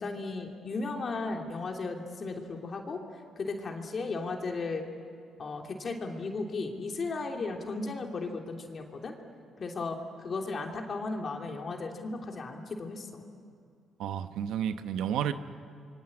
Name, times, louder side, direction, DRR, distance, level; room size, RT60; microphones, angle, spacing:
voice 1, 0.0-3.0 3.4-4.9 5.4-9.1 9.6-13.2, left 3 dB, 45° left, 2 dB, 2.9 m, -35 dB
voice 2, 14.0-15.3, right 9 dB, 85° right, 10 dB, 1.0 m, -31 dB
27.5 x 24.0 x 8.6 m, 2.2 s
cardioid pair, 90°, 0 cm